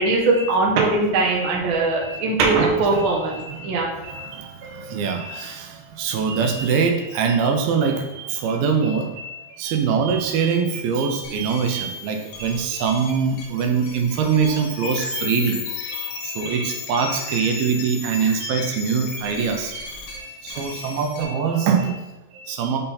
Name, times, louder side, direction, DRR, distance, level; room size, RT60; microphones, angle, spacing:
voice 1, 0.0-3.3 3.6-3.9, right 3 dB, 65° right, -2 dB, 1.2 m, -20 dB
voice 2, 1.9-2.2 3.0-3.7 4.0-22.8, right 6 dB, 85° right, 3 dB, 2.6 m, -24 dB
sound 1, 11.2-21.2, left 5 dB, 70° left, 2.1 m, -35 dB
6.6 x 3.9 x 4.2 m, 0.99 s
omnidirectional pair, 4.2 m